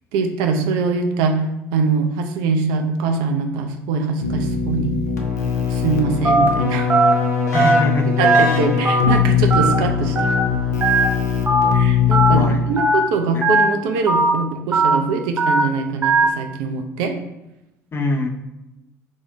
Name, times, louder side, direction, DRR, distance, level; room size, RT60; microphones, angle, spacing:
voice 1, 0.1-1.4 1.7-5.0 5.7-7.0 7.5-7.7 8.2-10.4 11.7-17.1, right 4 dB, 60° right, 4 dB, 0.5 m, -23 dB
Keyboard (musical), 4.2-12.9, left 6 dB, 80° left, 0.4 m, -21 dB
Telephone, 6.2-6.5 6.9-7.1 7.5-7.8 8.2-8.4 8.8-9.1 9.5-9.7 10.2-10.4 10.8-11.0 11.5-11.7 12.1-12.3 12.8-13.0 13.4-13.6 14.1-14.3 14.7-14.9 15.4-15.6 16.0-16.2, right 3 dB, 20° right, 0.7 m, -17 dB
voice 2, 7.5-8.5 12.3-12.6 13.3-13.4 17.9-18.3, left 1 dB, 30° left, 3 dB, 0.5 m, -24 dB
2.7 x 2.7 x 3.2 m, 0.93 s
figure-of-eight pair, 60°, 9 cm